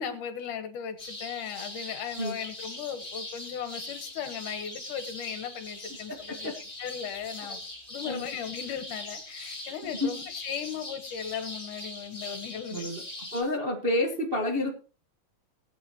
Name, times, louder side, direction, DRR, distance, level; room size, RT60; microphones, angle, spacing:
voice 1, 0.0-6.5 6.8-7.6 7.9-12.9, left 8 dB, 75° left, 8 dB, 2.8 m, -37 dB
sound 1, 1.0-13.4, left 2 dB, 15° left, 3.8 m, -41 dB
voice 2, 12.7-13.0 13.3-14.7, left 1 dB, 30° right, 0 dB, 1.0 m, -29 dB
20.0 x 8.5 x 3.0 m, 0.36 s
omnidirectional pair, 3.7 m